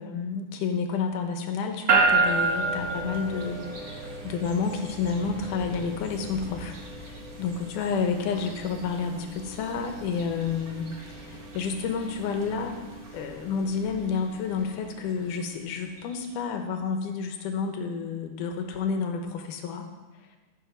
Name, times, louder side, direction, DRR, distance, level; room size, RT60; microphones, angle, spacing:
voice 1, 0.0-10.9 11.2-12.8 13.1-19.9, left 5 dB, 85° left, 5 dB, 2.5 m, -30 dB
sound 1, 1.9-16.2, right 3 dB, 45° right, 1.5 m, -32 dB
13.5 x 5.2 x 6.1 m, 1.2 s
omnidirectional pair, 3.6 m